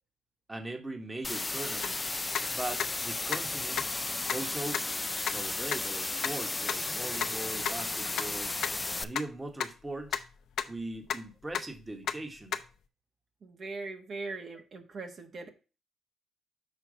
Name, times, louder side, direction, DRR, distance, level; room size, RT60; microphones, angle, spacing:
voice 1, 0.5-2.0 2.5-3.8 4.3-4.8 5.2-8.5 9.0-10.2 10.7-12.6, right 2 dB, 15° right, 5 dB, 1.3 m, -40 dB
sound 1, 1.2-9.0, left 2 dB, 20° left, 0.5 m, -34 dB
sound 2, 1.8-1.9 2.3-2.4 2.8-2.9 3.3-3.4 3.8-3.9 4.3-4.4 4.7-4.8 5.3-5.4 5.7-5.8 6.2-6.3 6.7-6.8 7.2-7.3 7.7-7.8 8.2-8.3 8.6-8.7 9.2-9.3 9.6-9.7 10.0-10.2 10.6-11.2 11.5-11.8 12.1-12.2 12.5-12.6, left 8 dB, 70° left, 0.6 m, -31 dB
voice 2, 13.4-15.5, right 3 dB, 50° right, 4 dB, 1.3 m, -40 dB
6.6 x 4.4 x 5.1 m, 0.33 s
cardioid pair, 90°, 0 cm